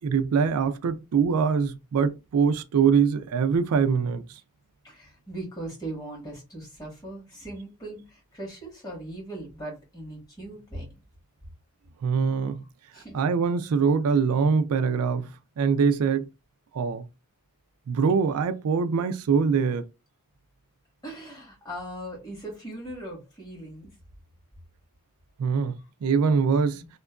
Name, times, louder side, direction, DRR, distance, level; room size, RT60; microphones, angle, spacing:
voice 1, 0.0-4.2 12.0-12.6 13.1-15.3 15.6-16.3 16.7-17.1 17.9-19.8 25.4-26.8, right 6 dB, 85° right, 0.4 m, -23 dB
voice 2, 4.8-10.8 12.4-12.5 12.9-13.3 21.0-23.9 26.7-26.9, right 1 dB, 20° left, 1.5 m, -39 dB
2.8 x 2.3 x 2.3 m
head